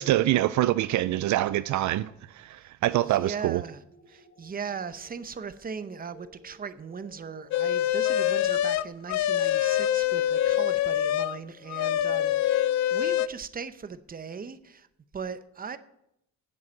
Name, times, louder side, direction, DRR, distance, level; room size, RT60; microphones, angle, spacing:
voice 1, 0.0-3.6, right 15 dB, 70° right, 0.4 m, -25 dB
voice 2, 3.1-3.8 4.1-14.9 15.1-15.8, right 6 dB, 30° right, 0.8 m, -38 dB
sound 1, 3.8-12.8, left 1 dB, 45° left, 4.9 m, -55 dB
sound 2, 7.5-11.4 11.7-13.3, left 12 dB, 65° left, 0.5 m, -25 dB
7.8 x 7.7 x 8.6 m
cardioid pair, 90°, 30 cm